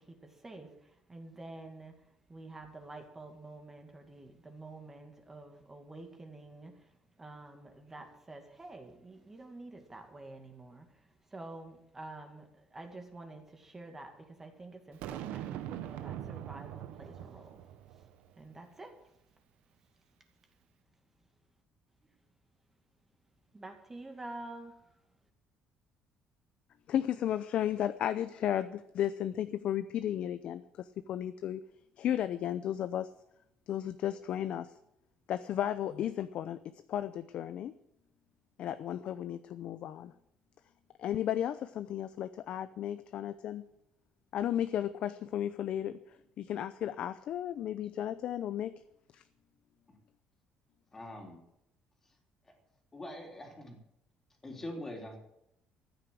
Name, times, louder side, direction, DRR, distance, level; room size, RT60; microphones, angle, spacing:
voice 1, 0.1-1.9 2.3-6.9 7.2-17.6 18.4-18.9 23.5-24.8, right 2 dB, 15° right, 4 dB, 2.2 m, -48 dB
Boom, 15.0-18.3, right 11 dB, 90° right, 1.1 m, -42 dB
voice 2, 26.9-31.6 32.0-33.1 33.7-34.7 35.3-36.6 36.9-37.7 38.6-40.1 41.0-43.6 44.3-46.0 46.4-48.7 49.1-49.2, left 11 dB, 55° left, 12 dB, 0.6 m, -34 dB
voice 3, 50.9-51.4 52.5-52.6 52.9-53.8 54.4-55.2, left 1 dB, 15° left, 2 dB, 3.6 m, -43 dB
14.5 x 9.6 x 7.7 m, 0.80 s
cardioid pair, 150°, 2 cm